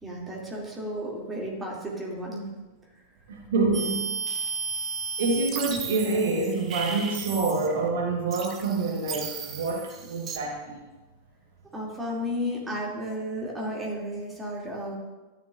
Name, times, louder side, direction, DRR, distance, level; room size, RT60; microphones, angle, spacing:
voice 1, 0.0-2.5 11.7-15.0, equal, 10° right, -3 dB, 2.4 m, -33 dB
voice 2, 3.3-4.0 5.2-10.8, right 3 dB, 60° right, 1 dB, 1.2 m, -27 dB
sound 1, 3.7-7.9 8.3-10.4, right 5 dB, 30° right, 1.0 m, -34 dB
12.5 x 9.3 x 2.5 m, 1.2 s
figure-of-eight pair, 90°, 0 cm